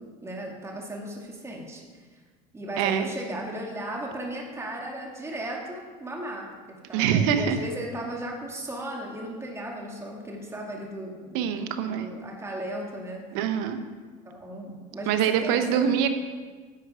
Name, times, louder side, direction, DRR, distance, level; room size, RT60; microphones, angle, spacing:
voice 1, 0.0-2.2 2.5-13.2 14.2-16.0, right 1 dB, 15° right, -1 dB, 2.0 m, -36 dB
voice 2, 2.8-3.1 6.9-7.6 11.3-12.1 13.3-13.8 15.1-16.1, right 8 dB, 75° right, 9 dB, 1.0 m, -24 dB
10.5 x 7.9 x 4.9 m, 1.5 s
supercardioid pair, 105°, 19 cm